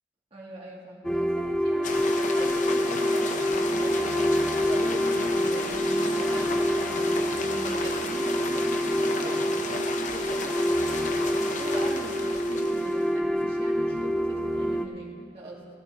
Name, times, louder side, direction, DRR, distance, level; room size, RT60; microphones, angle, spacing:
voice 1, 0.3-4.3 4.6-10.8 11.2-15.7, right 1 dB, 35° right, -5 dB, 2.0 m, -41 dB
sound 1, 1.0-14.9, equal, 5° left, 0.4 m, -26 dB
sound 2, 1.8-13.1, left 3 dB, 45° left, 0.8 m, -34 dB
19.0 x 14.5 x 2.7 m, 2.6 s
head